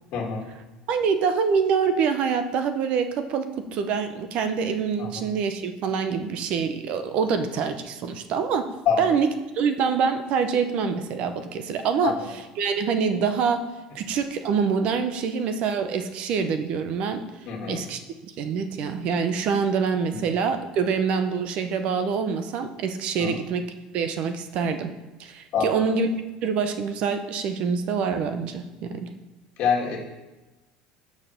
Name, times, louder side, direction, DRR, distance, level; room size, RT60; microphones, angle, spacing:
voice 1, 0.1-0.5 5.0-5.1 8.9-9.1 12.0-12.3 17.5-17.8 20.1-20.2 23.2-23.4 25.5-25.9 29.6-30.0, left 6 dB, 50° left, -2 dB, 1.9 m, -26 dB
voice 2, 0.9-8.7 9.0-9.3 9.5-12.1 12.6-13.6 13.9-17.2 17.7-18.0 18.4-24.9 25.2-26.1 26.4-29.1, right 6 dB, 50° right, 9 dB, 0.6 m, -25 dB
5.7 x 4.8 x 6.5 m, 1.1 s
cardioid pair, 150°, 3 cm